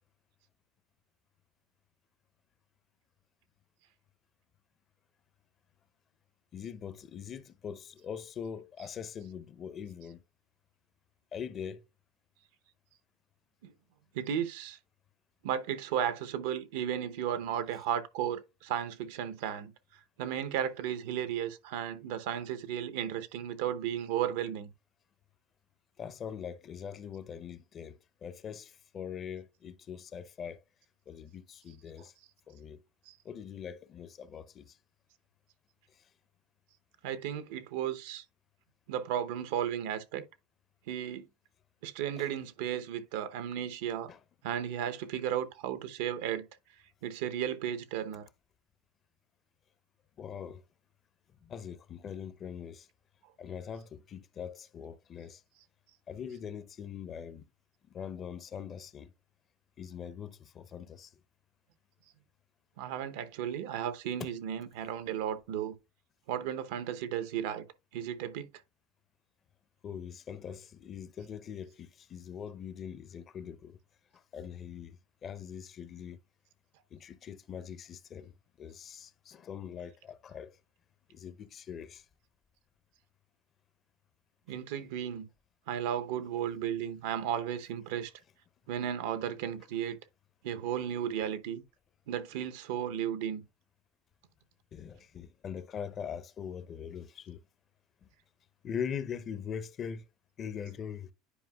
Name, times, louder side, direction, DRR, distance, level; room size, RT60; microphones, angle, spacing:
voice 1, 6.5-10.2 11.3-11.8 26.0-30.6 31.1-32.1 32.5-32.8 33.2-34.8 35.9-36.0 42.2-42.3 44.1-44.2 50.2-50.6 51.4-52.9 53.4-55.4 56.1-57.5 57.9-59.1 59.8-61.1 64.2-64.3 69.8-73.8 74.1-76.2 76.9-80.6 81.1-82.0 94.7-97.4 98.0-98.1 98.6-100.0 100.4-101.1, left 7 dB, 40° left, 0.7 m, -42 dB
voice 2, 14.1-14.8 15.4-19.7 20.2-24.7 33.1-33.2 37.0-38.2 38.9-40.2 40.9-41.2 41.8-44.1 44.4-46.5 47.0-48.3 62.8-65.7 66.3-67.7 67.9-68.5 84.5-85.3 85.7-88.1 88.7-90.0 90.4-91.6 92.1-93.4, right 9 dB, 75° right, 0.8 m, -34 dB
10.0 x 4.6 x 2.3 m
hypercardioid pair, 90°, 0 cm